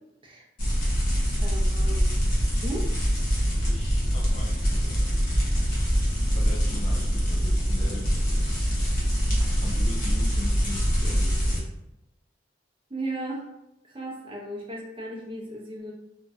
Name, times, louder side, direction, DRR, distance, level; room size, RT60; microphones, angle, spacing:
sound 1, 0.6-11.6, equal, 50° left, 0.9 m, -24 dB
voice 1, 1.4-2.2 2.6-2.9 12.9-13.5 13.8-15.9, right 1 dB, 30° right, -2 dB, 0.5 m, -35 dB
voice 2, 3.6-5.0 6.3-8.5 9.3-11.7, left 2 dB, 35° left, -3 dB, 0.3 m, -41 dB
2.6 x 2.1 x 2.3 m, 0.90 s
head